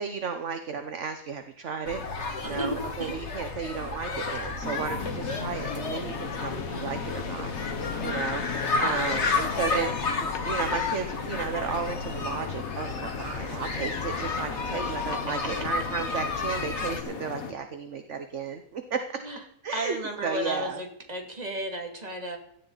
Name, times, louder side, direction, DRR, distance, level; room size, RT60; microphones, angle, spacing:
voice 1, 0.0-2.0 2.4-7.5 8.0-9.9 10.4-19.0 19.6-20.8, right 6 dB, 55° right, 7 dB, 1.4 m, -34 dB
sound 1, 1.8-17.0, left 4 dB, 50° left, 1.9 m, -32 dB
voice 2, 2.4-3.1 8.7-9.5 9.7-10.0 19.2-19.4 19.7-22.4, equal, 25° right, 2 dB, 2.6 m, -33 dB
sound 2, 4.6-17.5, left 5 dB, 65° left, 1.8 m, -36 dB
17.0 x 15.0 x 4.1 m, 0.70 s
omnidirectional pair, 1.6 m